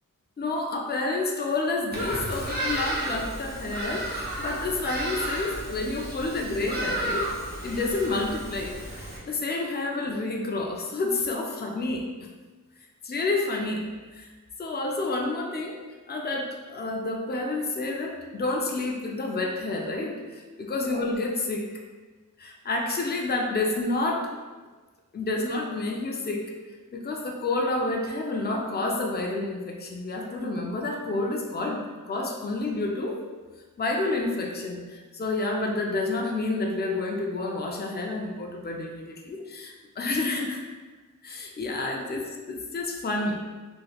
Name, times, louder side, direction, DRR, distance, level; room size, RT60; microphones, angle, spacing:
voice 1, 0.4-7.3 7.6-12.0 13.0-14.3 14.6-15.8 16.1-21.7 22.4-24.3 25.1-26.4 26.9-33.2 33.8-40.6 41.2-43.4, left 2 dB, 30° left, 1 dB, 0.4 m, -29 dB
Bird vocalization bird call bird song, 1.9-9.2, right 1 dB, 30° right, 0.8 m, -33 dB
3.2 x 3.1 x 2.3 m, 1.3 s
wide cardioid pair, 80°, 33 cm